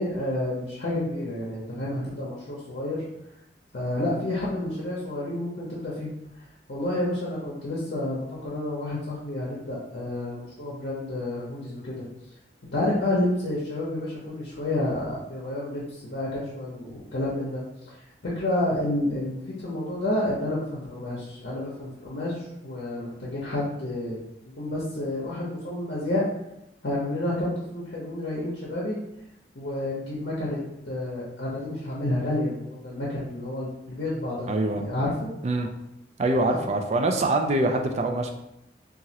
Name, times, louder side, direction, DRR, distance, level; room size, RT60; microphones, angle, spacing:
voice 1, 0.0-3.0 3.7-6.1 6.7-12.1 12.7-17.6 18.3-24.2 24.6-26.2 26.8-29.0 29.5-30.6 30.8-35.3 36.5-36.6, left 1 dB, 65° left, -6 dB, 0.7 m, -30 dB
voice 2, 34.5-34.9 35.4-35.7 36.2-38.3, right 2 dB, 40° right, 4 dB, 0.3 m, -24 dB
2.9 x 2.4 x 2.8 m, 0.84 s
head